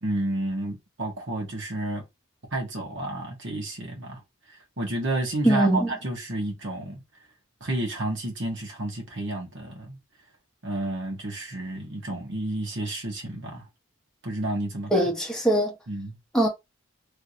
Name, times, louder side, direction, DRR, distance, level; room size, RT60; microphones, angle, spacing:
voice 1, 0.0-2.0 2.5-4.2 4.8-7.0 7.6-10.0 10.6-13.6 14.2-14.9 15.9-16.2, right 1 dB, 55° right, 1.3 m, -31 dB
voice 2, 5.4-5.9 14.9-15.7 16.3-16.5, right 1 dB, 5° left, 1.0 m, -21 dB
3.3 x 2.8 x 2.7 m
head